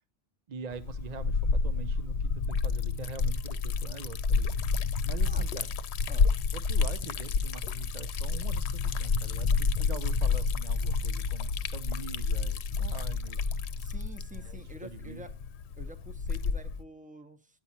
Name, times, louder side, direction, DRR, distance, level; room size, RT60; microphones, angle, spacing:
voice 1, 0.5-4.6 5.0-5.7 6.5-13.5 14.3-15.2, right 5 dB, 50° right, 12 dB, 0.6 m, -44 dB
Liquid, 0.7-16.8, left 4 dB, 85° left, 0.9 m, -29 dB
voice 2, 13.8-15.3 15.8-17.6, right 1 dB, 10° right, 10 dB, 0.7 m, -48 dB
9.9 x 9.3 x 2.8 m, 0.31 s
omnidirectional pair, 1.1 m